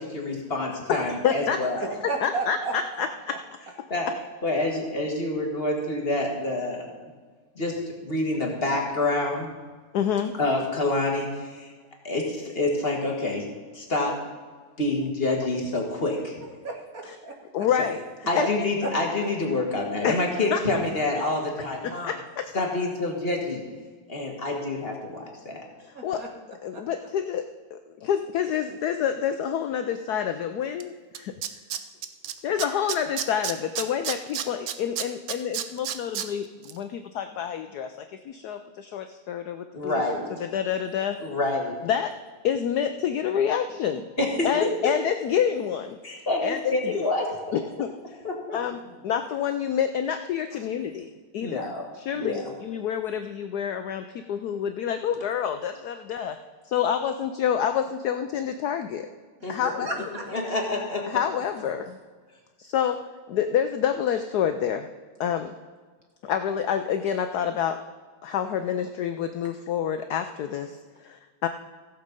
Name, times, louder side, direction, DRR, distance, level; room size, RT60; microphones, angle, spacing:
voice 1, 0.1-1.9 3.9-4.1 4.4-6.9 7.6-9.5 10.4-11.7 12.0-14.2 14.8-16.4 18.3-22.1 22.5-23.6 24.1-25.6 39.7-40.4 41.2-41.8 44.2-44.9 46.0-47.3 48.2-48.6 51.4-51.9 52.1-52.4 59.4-59.7 60.3-61.2, left 2 dB, 30° left, 0 dB, 1.8 m, -27 dB
voice 2, 0.9-1.6 2.2-3.3 9.9-10.4 17.1-17.2 17.5-18.0 18.3-18.5 20.0-20.2 20.5-20.6 21.8-22.6 25.8-26.2 26.6-31.3 32.4-40.0 40.4-41.2 41.8-42.1 42.4-44.1 44.4-46.0 46.4-47.0 47.5-48.2 48.5-51.7 51.9-56.4 56.6-59.1 59.5-59.9 61.1-62.0 62.6-64.9 65.2-65.5 66.2-67.8 68.2-71.5, left 8 dB, 75° left, 8 dB, 0.9 m, -28 dB
voice 3, 2.1-3.4 16.6-17.7 18.3-18.5 18.8-18.9 25.9-26.3 26.7-26.8 48.8-49.0 59.5-60.2, right 3 dB, 45° right, 2 dB, 1.6 m, -33 dB
Tools, 30.8-30.9 31.1-32.3 32.6-36.3 36.6-36.7, right 10 dB, 75° right, 0.8 m, -30 dB
15.5 x 7.5 x 5.3 m, 1.5 s
omnidirectional pair, 2.3 m